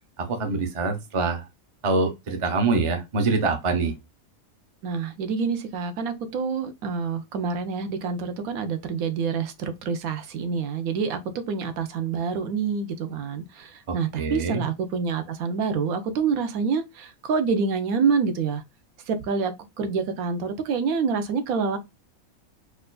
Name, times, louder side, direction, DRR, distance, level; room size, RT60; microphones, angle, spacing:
voice 1, 0.3-1.4 1.8-3.9 13.9-14.6, right 3 dB, 35° right, 0.5 m, -25 dB
voice 2, 4.8-11.2 11.5-18.6 19.1-21.8, right 5 dB, 80° right, 1.1 m, -27 dB
4.4 x 2.4 x 2.2 m
omnidirectional pair, 1.5 m